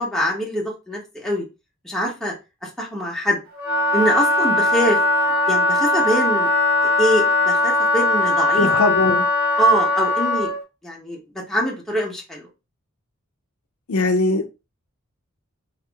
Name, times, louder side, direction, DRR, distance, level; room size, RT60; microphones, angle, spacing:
voice 1, 0.0-1.4 1.8-2.3 2.6-3.4 3.9-5.0 5.5-6.5 7.0-8.7 9.6-10.5 10.8-11.2 11.5-12.5, equal, ahead, 1.2 m, -23 dB
Wind instrument woodwind instrument, 3.5-10.6, left 2 dB, 45° right, 1.4 m, -19 dB
voice 2, 8.6-9.2 13.9-14.5, left 2 dB, 90° left, 0.6 m, -20 dB
4.0 x 2.9 x 3.5 m
head